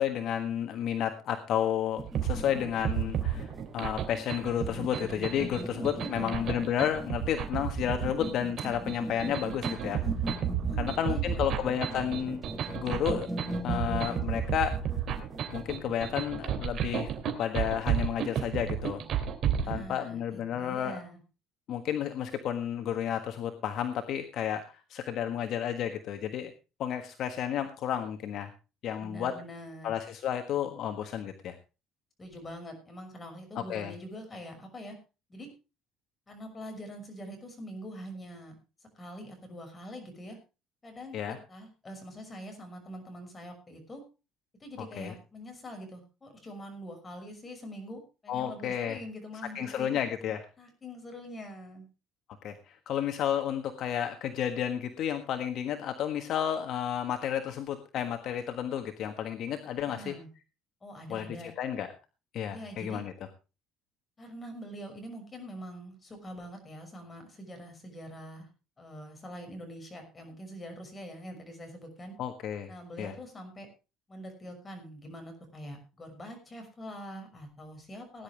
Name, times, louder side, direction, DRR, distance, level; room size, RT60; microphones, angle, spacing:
voice 1, 0.0-10.0 10.8-12.4 12.7-13.3 13.6-14.8 15.5-17.1 17.4-19.0 19.7-21.0 21.7-26.5 26.8-28.5 28.8-29.3 29.8-31.5 33.5-33.9 41.1-41.4 44.8-45.1 48.3-49.0 49.5-50.4 52.4-60.2 61.1-61.3 61.6-61.9 62.3-63.1 72.2-72.7 73.0-73.1, left 9 dB, 55° left, 6 dB, 1.5 m, -31 dB
sound 1, 2.0-15.8, right 1 dB, 5° right, 1.8 m, -40 dB
sound 2, 2.0-19.8, right 9 dB, 45° right, 2.9 m, -32 dB
voice 2, 5.7-6.4 9.8-10.2 10.7-11.6 19.6-21.2 29.0-29.9 32.2-35.0 35.3-35.5 36.3-38.6 38.9-40.4 40.8-44.0 44.6-51.9 59.9-60.3 60.8-61.5 62.5-63.0 64.2-68.5 68.8-72.2 72.7-73.7 74.1-78.2, equal, 20° left, 4 dB, 5.8 m, -44 dB
19.0 x 10.5 x 3.4 m, 0.31 s
cardioid pair, 145°, 0 cm